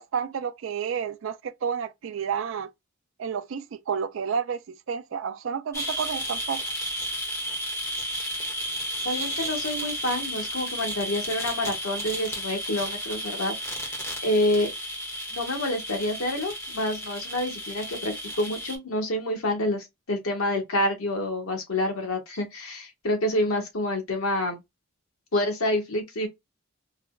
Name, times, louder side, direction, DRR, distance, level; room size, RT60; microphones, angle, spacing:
voice 1, 0.0-2.7 3.2-6.6, right 7 dB, 65° right, 0.4 m, -30 dB
sound 1, 5.7-18.8, equal, 15° left, 1.0 m, -33 dB
voice 2, 9.0-13.8 14.2-14.7 15.3-24.6 25.3-26.3, left 1 dB, 85° left, 1.2 m, -28 dB
4.0 x 2.1 x 2.2 m
head